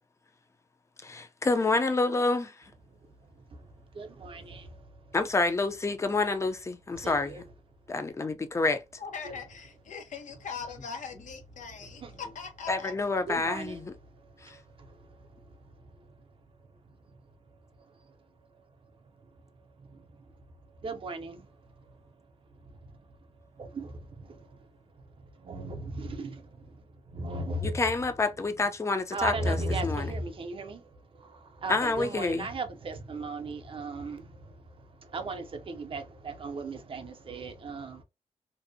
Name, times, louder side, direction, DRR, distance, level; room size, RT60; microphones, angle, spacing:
voice 1, 1.0-2.5 5.1-7.4 7.9-8.8 12.7-13.9 14.4-14.6 27.6-30.1 31.7-32.5, left 3 dB, 25° left, 0.4 m, -28 dB
voice 2, 3.9-4.7 6.9-7.4 12.0-12.1 13.3-13.8 14.5-14.6 20.8-21.5 23.6-24.5 25.4-26.5 27.1-27.8 29.1-30.8 31.2-34.4 35.1-38.0, right 2 dB, 45° right, 0.5 m, -36 dB
voice 3, 9.0-12.9, left 6 dB, 80° left, 0.7 m, -41 dB
2.6 x 2.0 x 2.6 m
wide cardioid pair, 125°, 13 cm